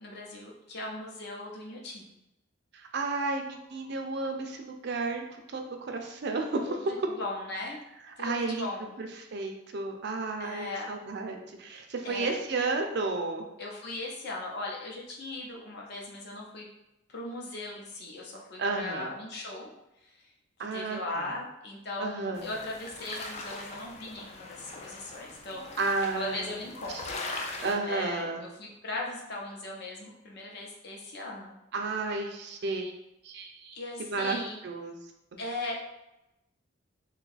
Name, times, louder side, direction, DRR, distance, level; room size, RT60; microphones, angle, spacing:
voice 1, 0.0-2.1 6.7-7.8 8.2-9.0 10.4-10.9 12.0-12.4 13.6-16.7 17.1-19.7 20.0-20.3 20.7-25.7 26.1-31.5 33.7-34.6 35.4-35.8, left 2 dB, 55° left, -1 dB, 0.7 m, -38 dB
voice 2, 2.7-5.2 5.5-5.6 5.9-6.8 8.2-8.7 9.0-13.4 18.6-19.1 20.6-21.3 22.0-22.4 25.8-26.5 27.6-28.4 31.7-32.9 33.2-34.4 34.6-35.0, right 3 dB, 55° right, 4 dB, 0.4 m, -32 dB
sound 1, 22.3-27.7, left 2 dB, 35° left, 0.3 m, -41 dB
2.7 x 2.3 x 3.9 m, 0.90 s
head